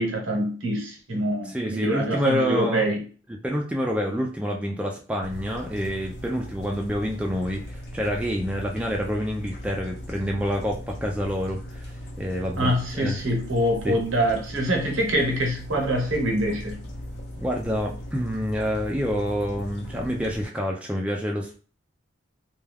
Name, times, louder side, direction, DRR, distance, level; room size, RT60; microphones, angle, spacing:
voice 1, 0.0-3.0 12.6-16.8, right 1 dB, 85° right, 2 dB, 0.9 m, -25 dB
voice 2, 1.5-2.9 3.4-13.2 13.8-14.0 17.4-21.5, equal, 5° right, 0 dB, 0.3 m, -28 dB
sound 1, 5.2-20.5, equal, 55° left, 0.7 m, -38 dB
2.3 x 2.2 x 3.3 m, 0.38 s
head